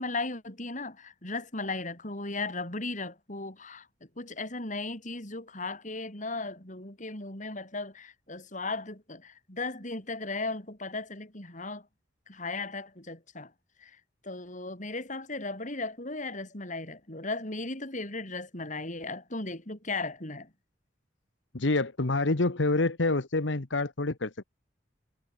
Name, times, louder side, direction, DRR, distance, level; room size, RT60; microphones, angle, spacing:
voice 1, 0.0-11.9 12.3-13.5 13.8-14.0 14.2-20.5, left 3 dB, 45° left, 7.2 m, -36 dB
voice 2, 21.5-24.4, left 2 dB, 90° left, 1.4 m, -27 dB
head